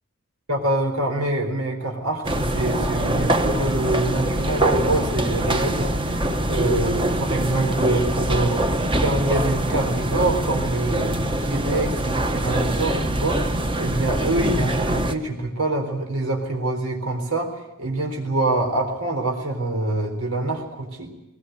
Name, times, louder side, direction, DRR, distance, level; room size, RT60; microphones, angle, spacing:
voice 1, 0.5-21.1, right 2 dB, 90° right, 2 dB, 3.9 m, -25 dB
sound 1, 2.2-15.2, right 1 dB, 25° right, 1.1 m, -23 dB
20.0 x 18.5 x 9.3 m, 0.97 s
head